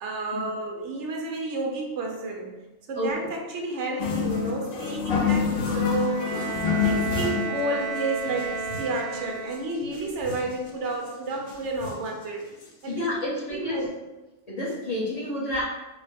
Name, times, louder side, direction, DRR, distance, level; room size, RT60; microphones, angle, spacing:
voice 1, 0.0-2.5 2.9-12.5 12.8-14.0, right 2 dB, 70° right, 1 dB, 0.8 m, -31 dB
sound 1, 4.0-7.6 8.0-8.1 8.3-9.0 9.5-9.6 9.8-10.6 11.1-11.2 11.5-12.1 12.6-12.7 12.9-13.0, left 6 dB, 55° left, 0.6 m, -27 dB
Bowed string instrument, 5.8-9.9, right 4 dB, 40° right, 0.6 m, -33 dB
voice 2, 12.9-13.8 14.5-15.6, left 1 dB, 35° left, -8 dB, 0.9 m, -29 dB
4.2 x 2.1 x 3.3 m, 1.1 s
omnidirectional pair, 1.3 m